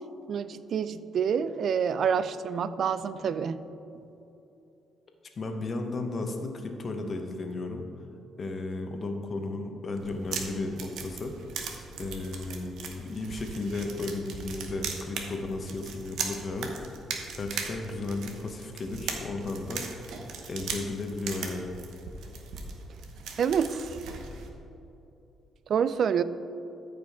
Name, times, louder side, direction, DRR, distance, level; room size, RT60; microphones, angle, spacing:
voice 1, 0.3-3.6 23.4-24.0 25.7-26.2, right 7 dB, 60° right, 14 dB, 0.3 m, -27 dB
voice 2, 5.4-7.9 8.4-11.3 12.0-16.7 17.3-19.9 20.5-21.7, left 2 dB, 45° left, 4 dB, 1.0 m, -34 dB
sound 1, 10.0-24.5, right 5 dB, 80° right, 0.9 m, -39 dB
13.5 x 5.2 x 3.6 m, 2.8 s
cardioid pair, 90°, 0 cm